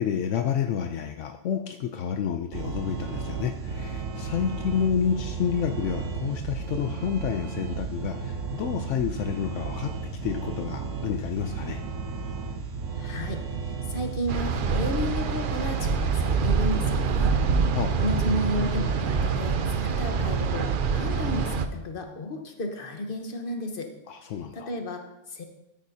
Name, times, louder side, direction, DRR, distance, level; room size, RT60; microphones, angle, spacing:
voice 1, 0.0-9.9 10.2-11.8 17.7-17.9 24.1-24.7, left 8 dB, 75° left, 6 dB, 0.9 m, -29 dB
sound 1, 2.5-20.6, right 5 dB, 80° right, 1.2 m, -34 dB
voice 2, 13.0-17.3 17.6-23.9 24.5-25.4, left 1 dB, 50° left, 4 dB, 1.3 m, -33 dB
sound 2, 14.3-21.7, right 5 dB, 55° right, 0.7 m, -26 dB
13.0 x 9.2 x 2.8 m, 0.91 s
omnidirectional pair, 1.3 m